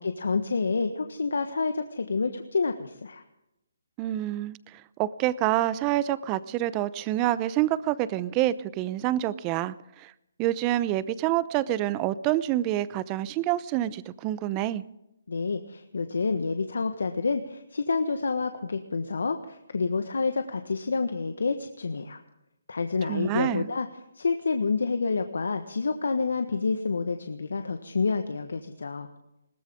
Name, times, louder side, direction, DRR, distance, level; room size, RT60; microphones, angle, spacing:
voice 1, 0.0-3.2 15.3-22.2 22.7-23.9 24.1-29.1, left 4 dB, 75° left, 7 dB, 1.3 m, -28 dB
voice 2, 4.0-10.1 10.4-14.8 23.1-23.7, right 14 dB, 25° right, 17 dB, 0.7 m, -27 dB
21.0 x 18.0 x 3.7 m, 0.86 s
figure-of-eight pair, 145°, 0 cm